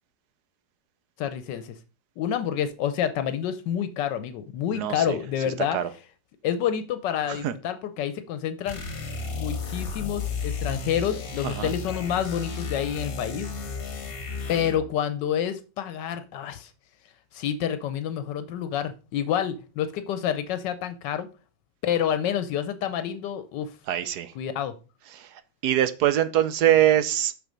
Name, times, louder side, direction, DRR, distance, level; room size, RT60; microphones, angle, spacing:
voice 1, 1.2-1.8 2.2-5.8 6.4-8.8 9.3-13.5 14.5-16.7 17.3-21.3 21.8-23.7 24.3-24.7, left 9 dB, 80° left, 1.3 m, -28 dB
voice 2, 4.7-5.2 5.7-5.9 7.3-7.5 11.4-11.7 23.9-24.3 25.1-25.3 25.6-27.3, right 11 dB, 70° right, 1.2 m, -23 dB
sound 1, 8.7-14.9, left 4 dB, 55° left, 1.8 m, -33 dB
7.0 x 6.2 x 5.1 m
omnidirectional pair, 1.9 m